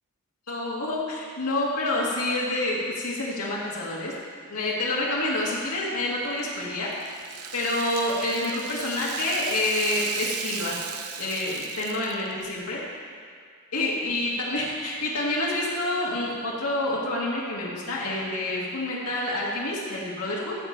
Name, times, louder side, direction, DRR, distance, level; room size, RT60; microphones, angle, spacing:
voice 1, 0.5-4.1 4.5-6.9 7.5-10.8 11.2-12.8 13.7-20.6, left 2 dB, 80° left, -5 dB, 2.0 m, -28 dB
Rattle (instrument), 6.2-12.5, right 8 dB, 80° right, 0.7 m, -37 dB
15.5 x 7.0 x 4.5 m, 2.1 s
head